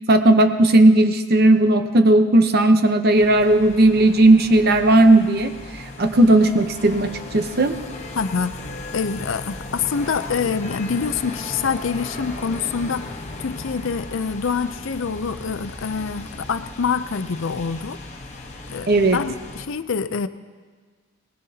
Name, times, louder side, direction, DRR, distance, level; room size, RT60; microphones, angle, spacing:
voice 1, 0.1-5.5 6.0-7.8 18.9-19.2, right 2 dB, 45° right, 7 dB, 0.8 m, -15 dB
sound 1, 3.2-19.6, left 2 dB, 30° left, 1.0 m, -36 dB
voice 2, 8.1-8.5 8.9-13.1 13.4-18.0 18.7-20.3, left 5 dB, 60° left, 12 dB, 0.5 m, -26 dB
20.5 x 19.5 x 2.8 m, 1.5 s
head